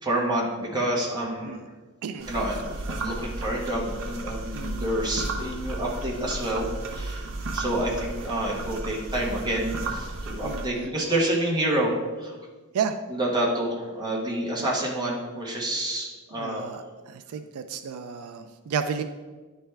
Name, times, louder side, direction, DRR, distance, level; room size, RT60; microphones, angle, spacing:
voice 1, 0.0-1.6 2.3-7.2 7.5-12.4 13.1-16.7, right 1 dB, 20° right, -4 dB, 1.3 m, -28 dB
sound 1, 2.2-10.7, right 2 dB, 60° right, 0.7 m, -34 dB
voice 2, 4.5-4.9 10.4-10.9 12.7-13.0 16.3-16.8 17.1-19.0, right 7 dB, 80° right, 8 dB, 0.4 m, -32 dB
10.0 x 3.4 x 3.3 m, 1.3 s
head